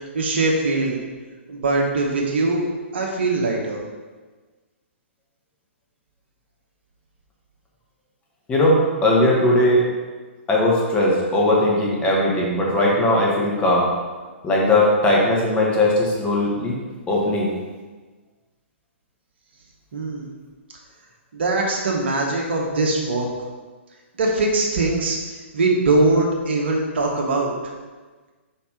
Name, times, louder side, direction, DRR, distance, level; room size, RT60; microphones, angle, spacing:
voice 1, 0.1-1.0 1.5-2.6 2.9-3.8 19.9-20.3 21.3-23.3 24.2-25.2 25.5-27.5, right 2 dB, 55° right, -1 dB, 1.4 m, -21 dB
voice 2, 8.5-9.8 10.5-13.9 14.4-16.8 17.1-17.5, left 1 dB, 15° left, -4 dB, 1.4 m, -19 dB
5.1 x 4.9 x 5.2 m, 1.3 s
figure-of-eight pair, 115°, 7 cm